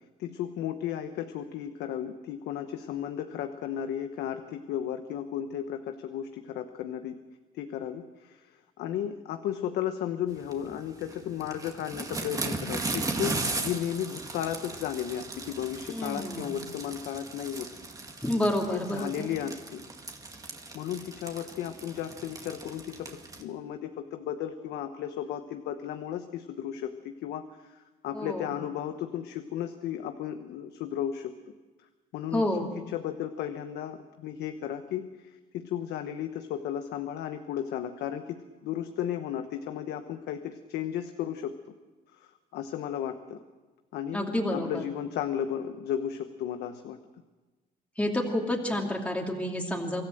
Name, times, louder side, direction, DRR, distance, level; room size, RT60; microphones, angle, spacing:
voice 1, 0.2-7.2 7.5-17.7 18.7-19.8 20.7-27.8 28.0-31.3 32.1-32.4 32.9-41.6 42.1-43.4 43.9-47.0, left 10 dB, 80° left, 7 dB, 1.1 m, -34 dB
sound 1, 10.4-23.4, right 3 dB, 20° right, 2.1 m, -37 dB
voice 2, 15.9-16.6 18.2-19.3 28.1-28.5 32.3-32.7 44.1-44.8 48.0-50.0, left 1 dB, 5° left, 0 dB, 2.7 m, -29 dB
24.5 x 13.5 x 7.8 m, 1.2 s
cardioid pair, 110°, 17 cm